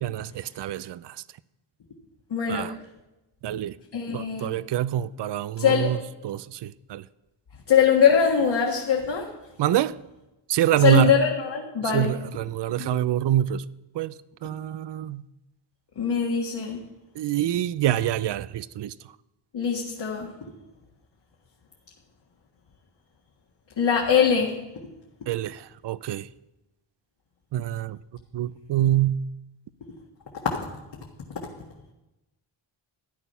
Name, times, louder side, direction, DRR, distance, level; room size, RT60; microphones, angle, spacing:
voice 1, 0.0-1.2 2.5-2.7 3.4-3.8 4.1-6.0 6.2-7.0 9.6-10.0 10.5-11.2 11.9-13.6 13.9-14.1 14.4-15.2 17.2-18.9 25.3-26.3 27.5-28.0 28.3-29.2, right 12 dB, 60° right, 0.5 m, -25 dB
voice 2, 2.3-2.7 3.9-4.5 5.6-5.9 7.7-9.3 10.8-12.1 12.8-12.9 16.0-16.8 19.5-20.3 23.8-24.5, left 7 dB, 55° left, 1.8 m, -22 dB
14.0 x 10.5 x 5.6 m
wide cardioid pair, 120°, 49 cm